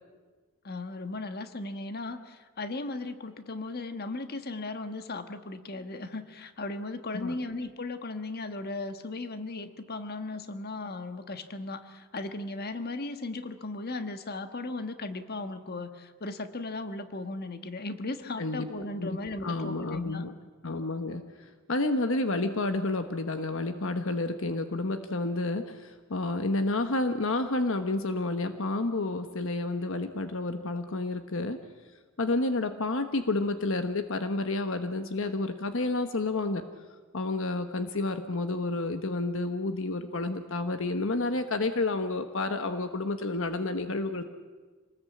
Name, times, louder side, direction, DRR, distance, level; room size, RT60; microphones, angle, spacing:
voice 1, 0.6-20.2, left 2 dB, 45° left, 9 dB, 1.5 m, -37 dB
voice 2, 19.0-20.3 20.6-31.6 32.2-36.7 37.1-44.2, left 2 dB, 65° left, 8 dB, 1.2 m, -30 dB
26.5 x 19.5 x 8.5 m, 1.4 s
head